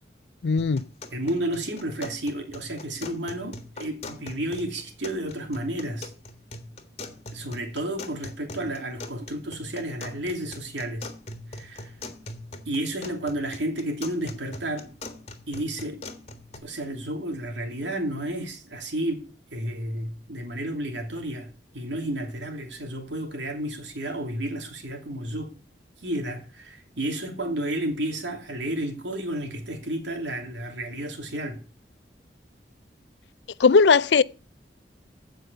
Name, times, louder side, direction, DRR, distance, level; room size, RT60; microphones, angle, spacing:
voice 1, 0.4-0.8 33.6-34.2, left 5 dB, 75° left, 0.5 m, -18 dB
sound 1, 0.6-16.6, left 2 dB, 35° left, 1.6 m, -42 dB
voice 2, 1.1-6.1 7.3-11.1 11.5-11.9 12.7-14.9 15.5-16.0 16.6-19.3 19.5-21.5 21.7-25.5 26.0-31.6, right 1 dB, 85° right, 2.9 m, -31 dB
15.5 x 5.5 x 6.7 m
head